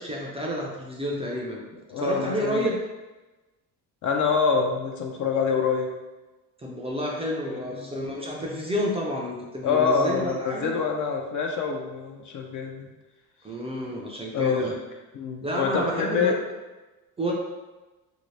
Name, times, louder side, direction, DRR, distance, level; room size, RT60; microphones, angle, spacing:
voice 1, 0.0-1.6 2.0-2.8 6.6-10.7 13.4-14.7 15.4-16.3 17.2-17.3, equal, 15° right, -3 dB, 0.4 m, -30 dB
voice 2, 1.9-2.7 4.0-5.9 7.5-7.9 9.6-12.9 14.3-14.7 15.1-16.4, left 5 dB, 45° left, 2 dB, 0.5 m, -26 dB
3.0 x 2.7 x 3.2 m, 1.1 s
cardioid pair, 125°, 41 cm